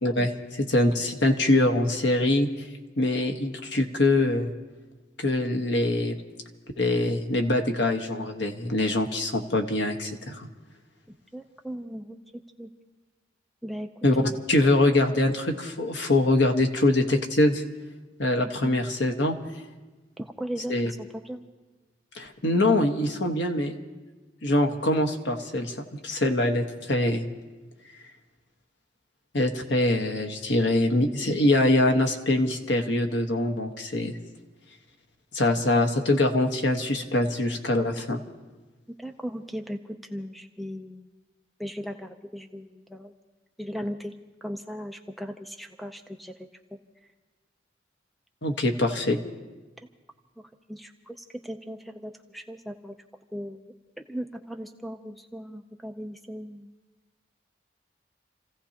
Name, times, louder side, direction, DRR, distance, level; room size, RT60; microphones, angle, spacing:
voice 1, 0.0-2.7 3.0-4.5 5.2-6.2 6.8-10.5 14.0-14.1 14.5-17.6 18.2-19.4 20.7-20.9 22.1-23.7 24.4-27.2 29.3-34.2 35.3-38.2 48.4-49.2, left 1 dB, 80° left, 4 dB, 1.3 m, -24 dB
voice 2, 11.3-12.7 13.6-13.9 18.4-18.8 20.2-20.7 21.1-21.4 39.0-41.1 41.6-43.1 43.6-44.1 44.4-46.5 50.7-53.0 53.3-53.6 54.0-56.7, equal, ahead, 5 dB, 0.6 m, -37 dB
29.5 x 16.0 x 2.9 m, 1.2 s
head